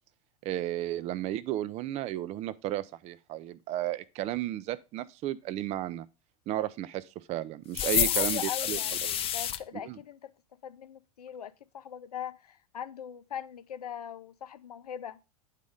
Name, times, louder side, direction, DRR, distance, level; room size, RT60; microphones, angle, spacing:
voice 1, 0.4-6.1 6.5-9.2 9.8-10.0, right 13 dB, 35° right, 0.4 m, -33 dB
sound 1, 7.7-9.6, left 10 dB, 30° left, 0.5 m, -28 dB
voice 2, 7.8-10.3 10.6-15.2, left 9 dB, 85° left, 0.6 m, -41 dB
8.3 x 4.1 x 4.8 m
hypercardioid pair, 90°, 19 cm